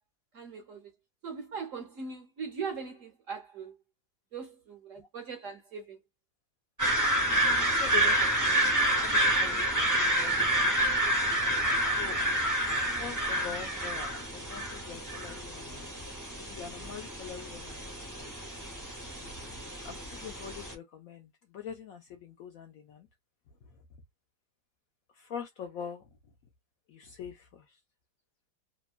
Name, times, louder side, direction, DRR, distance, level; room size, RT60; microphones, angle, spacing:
voice 1, 0.3-0.9 1.2-3.8 4.3-6.0, right 5 dB, 60° right, 0.9 m, -40 dB
sound 1, 6.8-20.7, right 1 dB, 20° right, 0.5 m, -29 dB
voice 2, 7.2-10.7 11.9-12.2 12.8-15.9 16.4-18.0 19.8-23.1 25.1-26.1 26.9-27.8, left 8 dB, 70° left, 0.8 m, -44 dB
2.9 x 2.2 x 2.3 m
omnidirectional pair, 1.9 m